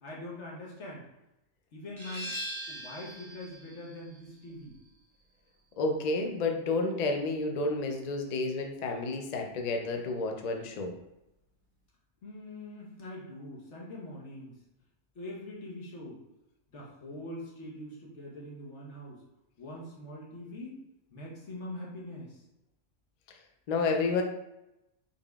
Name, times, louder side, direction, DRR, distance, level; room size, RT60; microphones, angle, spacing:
voice 1, 0.0-1.1 1.7-2.4 2.7-4.8 12.2-14.6 15.1-16.2 16.7-19.2 19.6-20.8 21.1-22.4, left 1 dB, 65° left, -3 dB, 1.3 m, -43 dB
sound 1, 2.0-7.4, equal, 30° right, 0.5 m, -43 dB
voice 2, 5.8-10.9 23.7-24.2, left 3 dB, 85° left, 3 dB, 0.3 m, -30 dB
3.7 x 3.5 x 2.3 m, 0.89 s
omnidirectional pair, 1.3 m